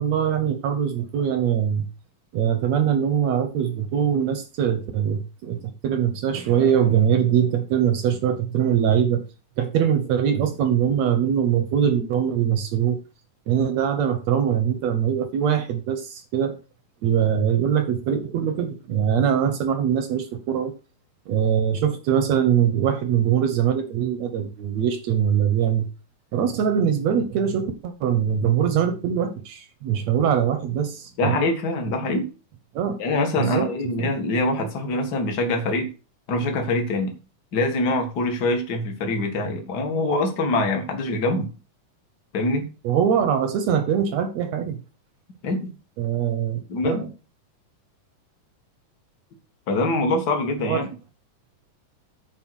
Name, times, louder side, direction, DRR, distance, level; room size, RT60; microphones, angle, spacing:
voice 1, 0.0-1.9 2.3-9.2 9.6-13.0 13.5-16.6 17.0-20.7 21.3-25.9 26.3-31.4 32.7-33.0 33.3-34.1 42.8-44.8 46.0-47.1 50.6-50.8, right 8 dB, 70° right, 1.8 m, -22 dB
voice 2, 31.2-32.3 33.0-35.9 36.3-37.1 37.5-41.5 42.3-42.7 45.4-45.7 46.7-47.0 49.7-50.9, left 2 dB, 40° left, 1.8 m, -24 dB
9.5 x 4.9 x 6.2 m
omnidirectional pair, 3.8 m